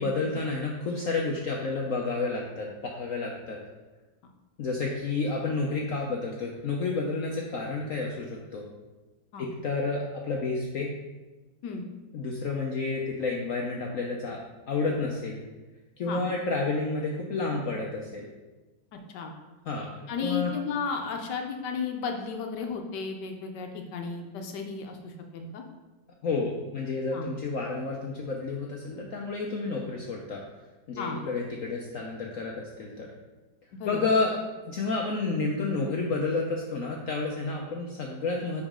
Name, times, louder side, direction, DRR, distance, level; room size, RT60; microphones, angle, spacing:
voice 1, 0.0-3.6 4.6-8.6 9.4-10.9 12.1-14.4 14.7-15.4 16.0-18.3 19.7-20.5 26.2-30.4 30.9-33.1 33.8-34.4 34.7-38.6, left 3 dB, 60° left, -1 dB, 1.0 m, -30 dB
voice 2, 18.9-19.3 20.1-25.6 27.1-27.3 31.0-31.2 33.8-34.0, left 5 dB, 80° left, 3 dB, 1.4 m, -34 dB
10.5 x 4.1 x 3.7 m, 1.1 s
omnidirectional pair, 1.8 m